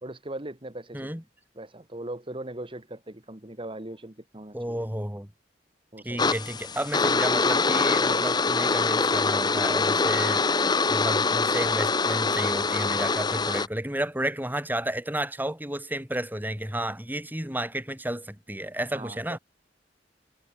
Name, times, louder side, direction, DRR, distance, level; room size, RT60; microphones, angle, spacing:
voice 1, 0.0-1.2 1.6-4.9 5.9-6.2 18.9-19.4, right 1 dB, 30° right, 2.0 m, -39 dB
voice 2, 4.5-5.3 6.0-10.5 10.9-19.4, right 1 dB, 10° right, 6.6 m, -32 dB
sound 1, 6.2-13.7, left 4 dB, 25° left, 0.9 m, -24 dB
head